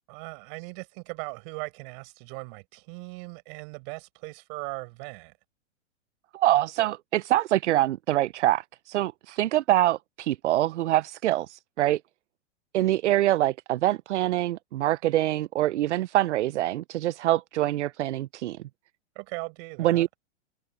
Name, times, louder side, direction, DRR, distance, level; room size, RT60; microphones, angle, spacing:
voice 1, 0.1-5.3 19.2-20.1, right 34 dB, 50° right, 7.1 m, -39 dB
voice 2, 6.3-12.0 12.7-18.6 19.8-20.1, right 14 dB, 75° right, 0.7 m, -25 dB
hypercardioid pair, 120°, 35 cm